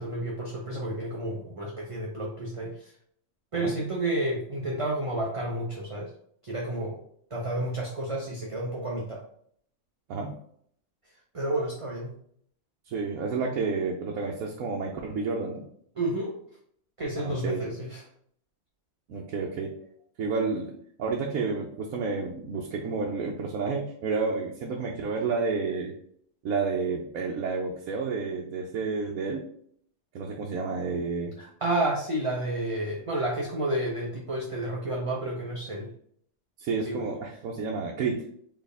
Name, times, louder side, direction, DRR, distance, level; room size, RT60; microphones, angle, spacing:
voice 1, 0.0-2.9 3.5-6.1 6.4-7.0 7.3-9.2 11.3-12.1 16.0-16.4 17.0-18.0 31.4-35.9 36.9-37.1, right 1 dB, 30° right, -3 dB, 0.7 m, -30 dB
voice 2, 12.9-15.6 17.2-17.6 19.1-19.8 20.2-20.7 21.0-25.9 26.4-29.4 30.1-31.4 36.6-38.2, right 4 dB, 85° right, 0 dB, 1.1 m, -30 dB
4.4 x 3.5 x 3.4 m, 0.64 s
omnidirectional pair, 1.4 m